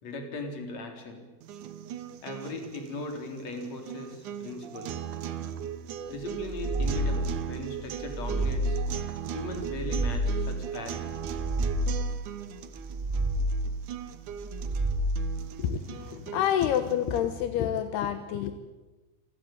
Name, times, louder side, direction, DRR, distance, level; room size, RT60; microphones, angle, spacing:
voice 1, 0.0-1.2 2.2-5.0 6.1-8.8 9.3-11.2, left 2 dB, 45° left, 3 dB, 4.7 m, -38 dB
sound 1, 1.4-17.4, right 9 dB, 65° right, 2.3 m, -39 dB
sound 2, 6.3-7.4 7.9-9.0 9.5-10.6 11.1-12.2 12.7-13.8 14.3-15.4, right 1 dB, 10° right, 4.0 m, -29 dB
voice 2, 15.6-18.5, left 10 dB, 80° left, 8 dB, 3.2 m, -28 dB
27.5 x 17.5 x 9.1 m, 1.2 s
omnidirectional pair, 4.6 m